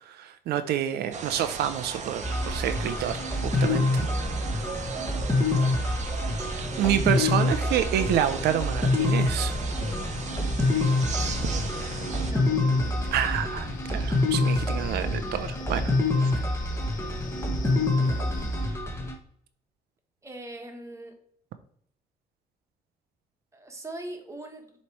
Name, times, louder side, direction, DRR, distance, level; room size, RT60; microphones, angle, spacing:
voice 1, 0.1-4.1 6.8-9.6 13.1-15.9 16.3-16.5, right 10 dB, 90° right, 10 dB, 0.6 m, -28 dB
sound 1, 1.1-12.3, right 6 dB, 45° right, 0.8 m, -37 dB
sound 2, 2.2-19.1, left 2 dB, 15° left, 1.2 m, -26 dB
voice 2, 4.9-5.4 12.2-12.5 20.2-21.2 23.5-24.7, right 1 dB, 20° right, 4 dB, 1.3 m, -41 dB
Wind, 9.5-18.7, left 5 dB, 55° left, 1.0 m, -41 dB
7.1 x 3.2 x 4.6 m, 0.66 s
cardioid pair, 120°, 16 cm